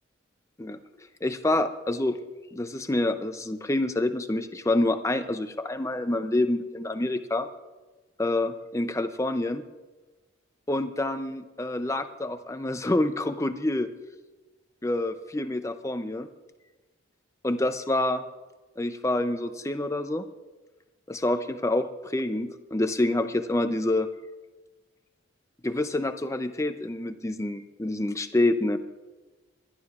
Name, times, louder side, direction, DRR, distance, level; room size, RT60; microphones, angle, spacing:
voice 1, 1.2-2.2 2.5-7.5 8.2-9.6 10.7-13.9 14.8-16.3 17.4-18.2 18.8-20.2 21.1-24.1 25.6-28.8, left 1 dB, 15° left, 9 dB, 0.5 m, -27 dB
29.5 x 11.5 x 2.4 m, 1.2 s
head